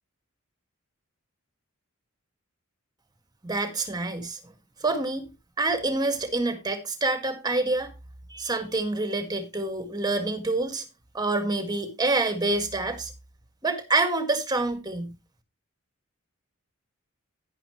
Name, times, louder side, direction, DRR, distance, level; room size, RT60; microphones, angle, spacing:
voice 1, 3.4-4.4 4.8-5.3 5.6-7.9 8.3-10.8 11.1-13.1 13.6-15.2, right 2 dB, 20° right, 1.8 m, -27 dB
10.5 x 10.0 x 3.0 m
head